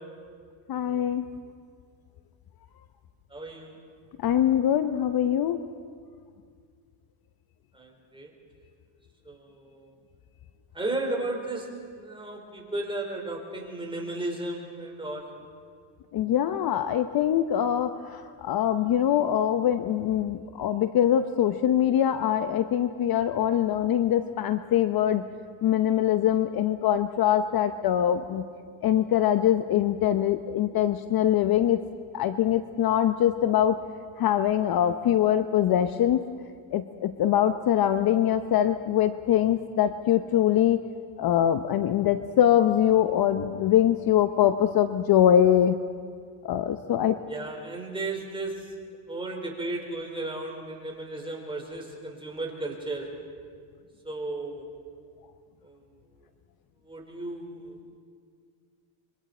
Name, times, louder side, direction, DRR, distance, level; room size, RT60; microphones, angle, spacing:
voice 1, 0.7-1.2 4.2-5.6 16.1-25.2 25.6-28.4 28.8-31.8 32.1-33.8 34.2-36.2 36.7-40.8 41.2-45.7 46.4-47.2, left 10 dB, 45° left, 10 dB, 0.8 m, -23 dB
voice 2, 3.3-3.8 7.7-8.3 9.2-9.9 10.7-15.3 47.3-48.7 49.1-53.1 54.0-54.7 55.6-56.0 56.8-58.0, right 2 dB, 10° right, 0 dB, 4.5 m, -35 dB
26.5 x 23.5 x 4.4 m, 2.1 s
cardioid pair, 105°, 49 cm